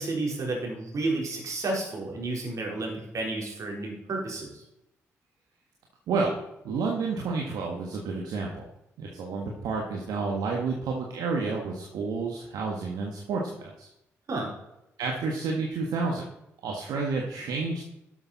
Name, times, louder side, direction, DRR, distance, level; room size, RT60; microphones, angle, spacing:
voice 1, 0.0-4.6 14.3-14.5, right 2 dB, 55° right, -1 dB, 3.9 m, -31 dB
voice 2, 6.6-8.6 9.0-13.9 15.0-16.2 16.6-17.8, right 4 dB, 75° right, -1 dB, 1.6 m, -30 dB
12.5 x 6.9 x 4.1 m, 0.85 s
hypercardioid pair, 50°, 7 cm